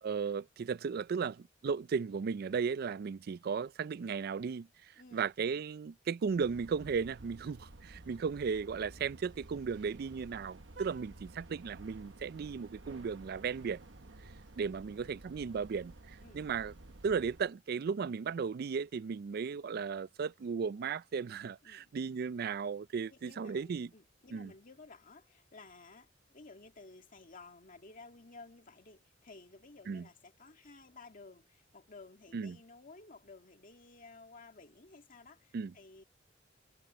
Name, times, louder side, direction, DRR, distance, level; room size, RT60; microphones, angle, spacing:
voice 1, 0.0-4.7 5.1-13.8 14.6-16.7 17.0-23.9 24.3-24.5 29.9-30.0 32.3-32.6 35.5-35.7, right 6 dB, 55° right, 0.4 m, -35 dB
voice 2, 5.0-5.3 14.9-15.0 16.2-16.5 21.6-21.9 23.1-36.0, left 3 dB, 45° left, 2.2 m, -55 dB
sound 1, 6.3-17.5, right 2 dB, 70° right, 1.1 m, -53 dB
head